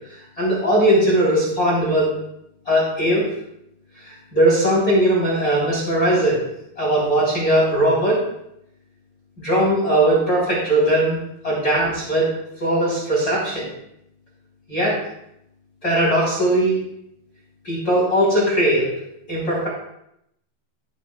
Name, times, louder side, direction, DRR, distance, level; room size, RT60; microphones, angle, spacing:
voice 1, 0.1-2.1 2.6-3.2 4.0-6.4 6.8-8.2 9.4-11.2 11.4-12.3 12.6-13.7 14.7-15.0 15.8-16.8 17.6-18.9 19.3-19.7, right 1 dB, 20° left, -6 dB, 3.3 m, -19 dB
19.0 x 7.3 x 2.3 m, 0.77 s
omnidirectional pair, 5.5 m